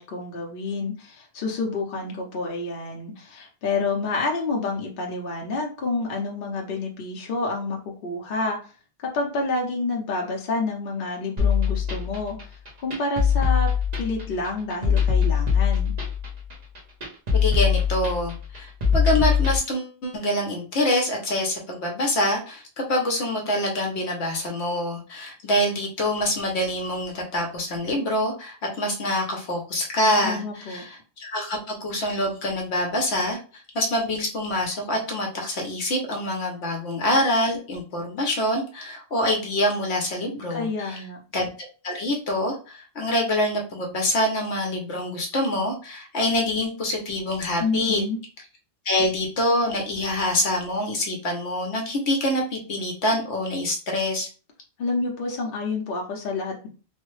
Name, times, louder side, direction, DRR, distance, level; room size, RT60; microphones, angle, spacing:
voice 1, 0.0-8.6 9.0-12.4 12.8-13.7 14.0-15.9 30.2-30.8 40.5-41.2 47.6-48.2 54.8-56.7, left 3 dB, 60° left, -1 dB, 0.9 m, -28 dB
sound 1, 11.4-19.6, left 7 dB, 40° right, 0.9 m, -22 dB
voice 2, 17.3-41.1 41.3-41.5 41.8-48.0 48.8-54.3, left 1 dB, 75° left, 0 dB, 1.1 m, -25 dB
3.2 x 2.1 x 3.1 m, 0.36 s
omnidirectional pair, 1.2 m